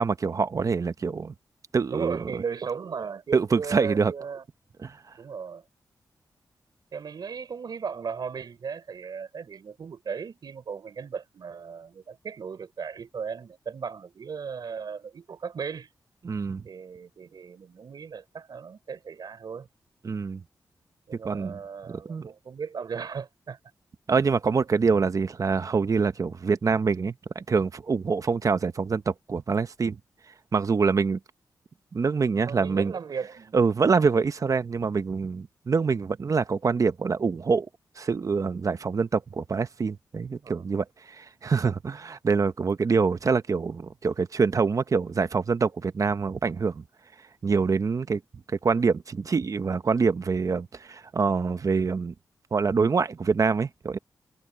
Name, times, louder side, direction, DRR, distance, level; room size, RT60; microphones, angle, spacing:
voice 1, 0.0-1.3 1.7-2.2 3.3-4.1 4.8-4.9 16.2-16.6 20.0-20.4 21.2-21.6 21.9-22.3 24.1-30.0 30.5-31.2 31.9-32.9 33.5-37.7 38.0-40.8 41.2-46.8 47.4-48.2 48.6-52.1 52.5-54.0, right 5 dB, 50° right, 1.0 m, -25 dB
voice 2, 1.9-4.4 5.2-5.6 6.9-15.9 16.6-19.7 21.1-23.6 32.3-33.6 40.4-40.6, right 6 dB, 70° right, 4.9 m, -36 dB
cardioid pair, 80°, 7 cm